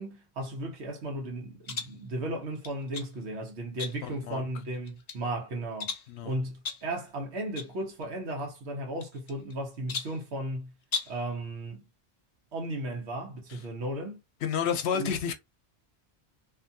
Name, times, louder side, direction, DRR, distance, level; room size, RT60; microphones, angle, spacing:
voice 1, 0.0-5.9 6.2-10.7 11.1-11.8 12.5-14.2 14.9-15.1, right 1 dB, 90° right, 1.1 m, -35 dB
sound 1, 1.6-2.0 2.6-3.1 3.8-4.2 4.7-5.2 5.8-6.2 6.6-6.9 7.6-7.7 8.0-8.1 9.0-9.5 9.9-10.2 10.8-11.2, left 6 dB, 50° left, 0.6 m, -37 dB
voice 2, 4.0-4.4 6.1-6.3 14.4-15.3, left 7 dB, 80° left, 0.8 m, -30 dB
2.6 x 2.3 x 2.6 m
omnidirectional pair, 1.1 m